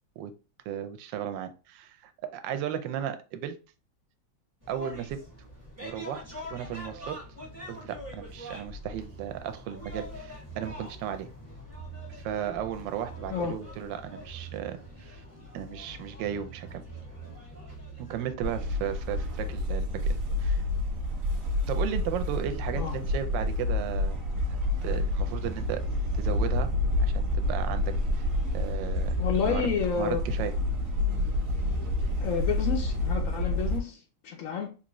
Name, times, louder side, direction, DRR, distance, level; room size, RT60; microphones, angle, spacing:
voice 1, 0.7-3.6 4.7-5.2 5.8-6.2 6.5-7.2 7.7-11.3 12.1-15.2 15.5-16.8 18.0-20.6 21.7-24.2 24.8-25.8 26.1-26.7 27.0-28.2 28.5-29.7 30.0-30.5, right 10 dB, 80° right, 1.2 m, -35 dB
sound 1, 4.6-18.3, right 1 dB, 15° right, 0.5 m, -43 dB
sound 2, 18.4-33.8, left 2 dB, 55° right, 1.1 m, -28 dB
voice 2, 29.2-30.2 32.2-34.8, left 6 dB, 85° left, 0.7 m, -30 dB
3.7 x 2.6 x 2.9 m
omnidirectional pair, 2.0 m